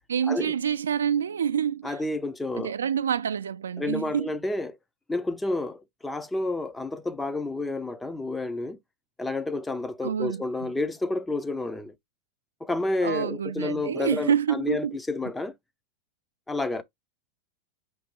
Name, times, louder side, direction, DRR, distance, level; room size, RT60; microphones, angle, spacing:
voice 1, 0.1-2.0 2.6-4.3 10.0-10.7 13.0-15.0, right 8 dB, 70° right, 0.3 m, -27 dB
voice 2, 1.8-2.7 3.8-4.8 5.1-8.8 9.2-11.9 12.6-15.5 16.5-16.8, left 2 dB, 10° left, 0.4 m, -30 dB
5.7 x 3.2 x 2.9 m
figure-of-eight pair, 90°, 0 cm